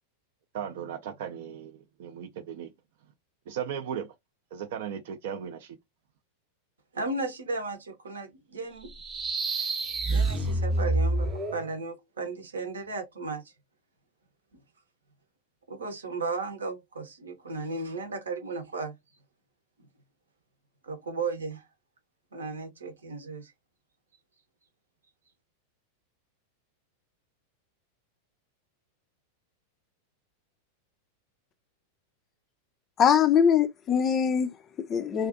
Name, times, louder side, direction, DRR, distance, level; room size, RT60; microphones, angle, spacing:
voice 1, 0.5-2.7 3.5-4.1 4.5-5.8, right 8 dB, 55° right, 0.4 m, -36 dB
voice 2, 6.9-8.9 10.1-13.5 15.7-19.0 20.8-21.6 22.3-23.5, right 3 dB, 70° right, 0.7 m, -35 dB
sound 1, 8.8-11.7, right 2 dB, 20° right, 0.6 m, -27 dB
voice 3, 33.0-35.3, left 8 dB, 25° left, 0.3 m, -23 dB
2.4 x 2.3 x 2.4 m
figure-of-eight pair, 90°, 0 cm